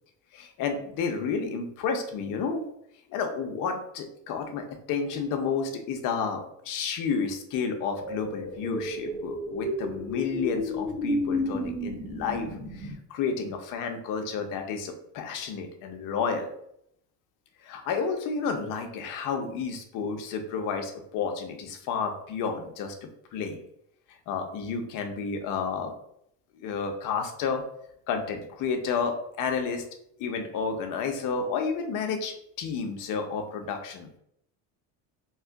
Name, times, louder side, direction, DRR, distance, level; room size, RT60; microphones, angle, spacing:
voice 1, 0.3-2.7 3.1-16.5 17.6-23.6 24.3-25.9 26.5-27.6 28.1-29.8 30.2-34.1, left 5 dB, 60° left, 5 dB, 0.7 m, -31 dB
sound 1, 8.0-12.9, left 1 dB, 15° right, 0.8 m, -32 dB
2.9 x 2.4 x 3.5 m, 0.75 s
cardioid pair, 120°, 36 cm